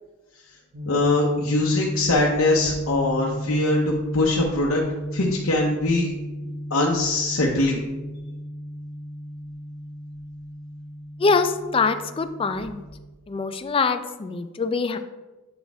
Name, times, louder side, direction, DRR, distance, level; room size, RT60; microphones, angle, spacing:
sound 1, 0.7-13.0, equal, 55° right, 0.9 m, -34 dB
voice 1, 0.9-4.8 5.1-6.1 6.7-7.8, left 2 dB, 85° left, -3 dB, 0.8 m, -22 dB
voice 2, 11.2-12.8 13.3-15.0, left 4 dB, 25° left, 10 dB, 0.3 m, -24 dB
7.7 x 4.2 x 3.4 m, 1.2 s
head